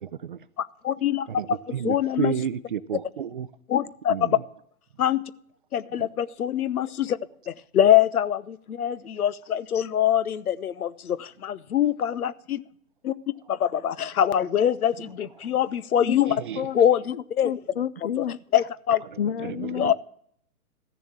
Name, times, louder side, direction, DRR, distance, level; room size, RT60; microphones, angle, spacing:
voice 1, 0.0-0.4 1.3-3.5 4.1-4.3 5.9-6.1 16.3-16.7 19.4-19.9, right 8 dB, 35° right, 0.5 m, -31 dB
voice 2, 0.6-1.6 1.8-2.3 3.7-4.4 5.0-5.2 5.7-7.2 7.5-12.6 13.0-16.4 16.7-17.5 18.5-19.0 19.8-19.9, left 10 dB, 75° left, 0.8 m, -24 dB
voice 3, 16.0-16.8 17.1-18.4 19.2-19.9, left 9 dB, 45° left, 0.4 m, -30 dB
14.0 x 7.0 x 8.6 m
hypercardioid pair, 140°, 45 cm